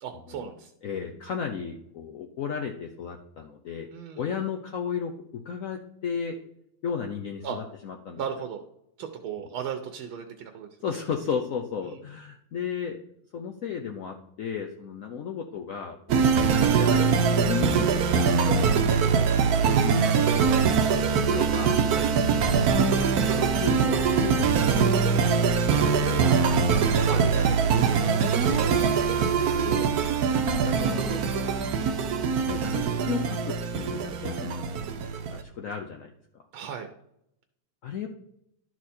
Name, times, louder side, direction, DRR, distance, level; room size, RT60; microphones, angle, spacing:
voice 1, 0.0-0.7 3.9-4.3 7.4-7.6 8.2-8.6 9.0-10.7 11.9-12.0 21.9-22.1 27.0-27.2 36.5-36.9, right 8 dB, 80° right, 5 dB, 1.6 m, -35 dB
voice 2, 0.8-3.9 4.2-6.4 6.8-8.2 10.8-13.0 13.3-19.3 19.7-21.8 22.4-24.9 25.3-26.6 26.9-28.0 28.5-29.9 30.5-31.2 32.5-34.6 35.3-36.4 37.8-38.1, left 7 dB, 75° left, 3 dB, 0.7 m, -35 dB
sound 1, 16.1-35.4, right 6 dB, 65° right, 1.0 m, -23 dB
12.0 x 4.5 x 4.3 m, 0.75 s
omnidirectional pair, 2.3 m